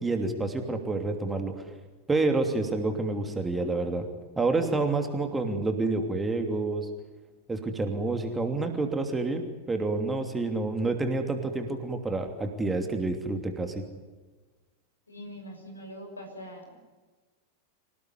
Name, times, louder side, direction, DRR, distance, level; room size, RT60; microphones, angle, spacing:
voice 1, 0.0-1.6 2.1-4.1 4.4-6.9 7.5-9.4 9.7-13.8, right 3 dB, 10° right, 5 dB, 2.9 m, -28 dB
voice 2, 15.1-16.8, equal, 80° left, 4 dB, 6.4 m, -43 dB
26.5 x 18.0 x 9.7 m, 1.3 s
figure-of-eight pair, 90°, 0 cm